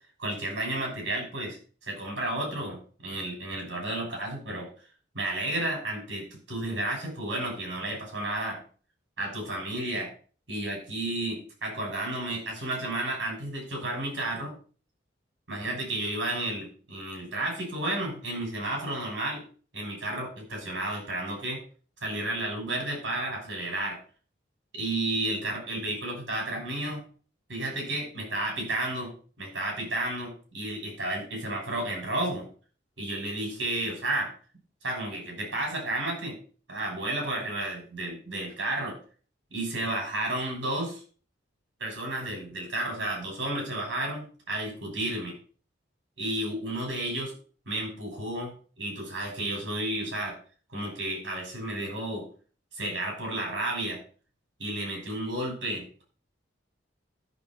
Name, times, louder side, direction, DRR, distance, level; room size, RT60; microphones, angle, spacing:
voice 1, 0.2-1.6 1.9-4.7 5.1-8.6 9.2-10.1 10.5-14.5 15.5-19.4 19.7-21.6 22.0-24.0 24.7-27.0 27.5-32.5 33.0-34.3 34.8-36.4 36.7-39.0 39.5-41.0 41.8-45.4 46.2-47.3 47.7-50.4 50.7-52.2 52.7-54.0 54.6-56.1, right 1 dB, 70° right, 0 dB, 6.3 m, -32 dB
13.5 x 6.4 x 4.5 m, 0.41 s
head